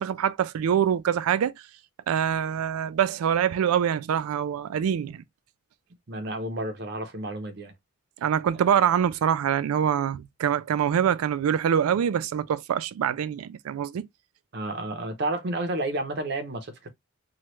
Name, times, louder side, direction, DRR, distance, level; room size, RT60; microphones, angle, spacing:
voice 1, 0.0-1.5 2.1-5.2 8.2-14.1, right 8 dB, 85° right, 0.3 m, -24 dB
voice 2, 6.1-7.7 14.5-16.9, right 2 dB, 50° right, 0.6 m, -31 dB
3.0 x 2.3 x 3.0 m
head